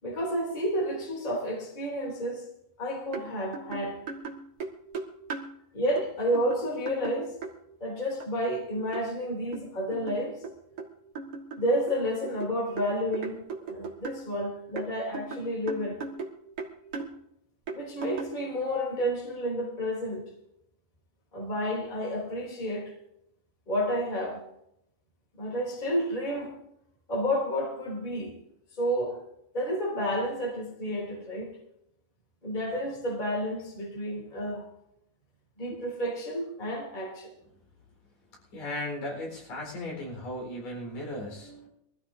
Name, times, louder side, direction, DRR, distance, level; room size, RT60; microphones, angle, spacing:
voice 1, 0.0-2.4 2.8-4.1 5.7-7.4 7.8-10.4 11.5-16.0 17.7-20.3 21.3-22.9 23.7-24.4 25.4-26.5 27.1-28.4 28.8-29.2 29.5-31.5 32.4-34.7 35.6-37.3, equal, 15° left, -1 dB, 2.9 m, -30 dB
sound 1, 3.1-3.3 3.5-5.5 6.0-6.1 6.3-7.5 8.2-8.3 8.9-9.1 9.5-10.9 11.1-14.3 14.8-16.3 16.6-17.1 17.7-18.4, right 4 dB, 45° right, 1.5 m, -37 dB
voice 2, 38.5-41.7, left 1 dB, 75° left, -1 dB, 6.0 m, -36 dB
23.0 x 14.5 x 2.7 m, 0.79 s
omnidirectional pair, 3.8 m